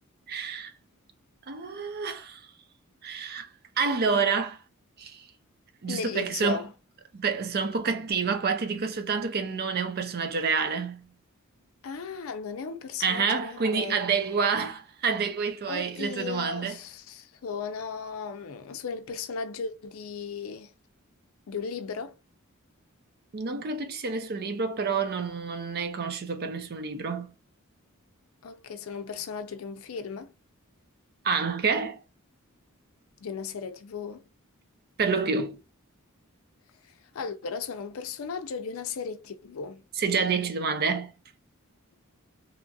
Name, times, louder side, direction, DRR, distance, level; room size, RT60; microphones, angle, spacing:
voice 1, 0.3-0.7 1.5-2.4 3.0-3.5 3.8-4.6 5.0-5.3 5.8-6.6 7.1-11.1 13.0-16.8 23.3-27.3 31.2-32.0 35.0-35.6 40.0-41.1, right 5 dB, 45° right, 0.5 m, -28 dB
voice 2, 5.9-6.7 11.8-14.0 15.7-20.7 21.5-22.1 28.4-30.3 33.2-34.2 37.1-39.8, left 5 dB, 70° left, 0.5 m, -36 dB
3.0 x 2.4 x 2.6 m
head